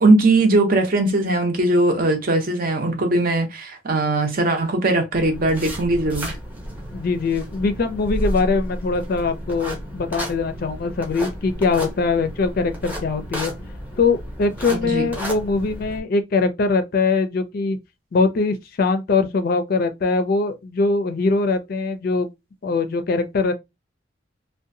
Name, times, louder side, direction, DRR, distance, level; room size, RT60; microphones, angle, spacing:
voice 1, 0.0-6.4 14.7-15.1, right 2 dB, 45° right, 0.7 m, -19 dB
sound 1, 5.1-16.0, equal, 10° right, 0.7 m, -32 dB
voice 2, 6.9-13.5 14.0-17.8 18.1-22.3 22.6-23.5, left 4 dB, 50° left, 0.4 m, -22 dB
2.7 x 2.2 x 2.6 m
head